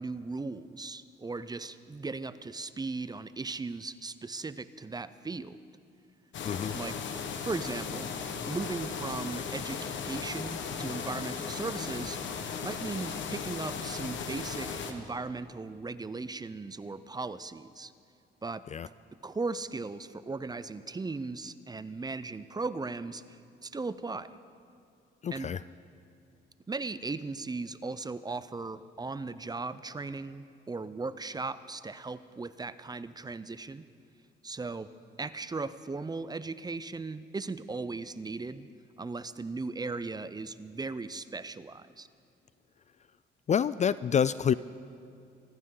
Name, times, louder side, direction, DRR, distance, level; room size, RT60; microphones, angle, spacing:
voice 1, 0.0-5.6 6.7-7.0 7.4-8.1 8.4-12.2 12.6-17.9 18.4-18.6 19.2-24.4 25.3-25.5 26.7-33.9 34.4-34.9 35.2-38.7 39.0-42.1, right 3 dB, 20° right, 14 dB, 0.6 m, -37 dB
sound 1, 6.3-14.9, left 6 dB, 70° left, 1.4 m, -36 dB
voice 2, 6.4-6.8 18.7-18.9 25.2-25.6 43.5-44.5, left 8 dB, 35° left, 17 dB, 0.4 m, -27 dB
25.0 x 14.0 x 3.9 m, 2.6 s
cardioid pair, 90°, 20 cm